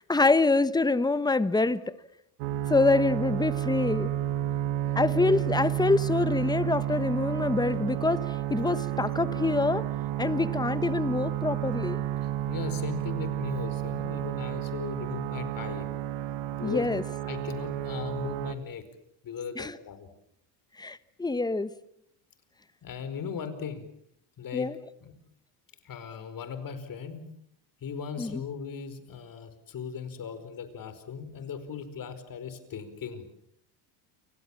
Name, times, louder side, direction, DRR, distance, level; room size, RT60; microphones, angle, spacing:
voice 1, 0.1-1.9 2.7-4.1 4.9-9.9 10.2-12.0 16.6-17.0 19.6-19.8 20.8-21.7 24.5-24.8 28.2-28.4, left 3 dB, 10° left, 15 dB, 1.2 m, -26 dB
sound 1, 2.4-18.5, right 12 dB, 80° right, 2.1 m, -31 dB
voice 2, 12.2-15.9 16.5-16.9 17.2-18.8 19.2-20.1 22.8-23.8 24.4-24.7 25.0-25.1 25.8-27.3 27.8-33.2, left 7 dB, 40° left, 11 dB, 5.0 m, -38 dB
29.0 x 25.0 x 7.4 m, 0.72 s
cardioid pair, 120°, 49 cm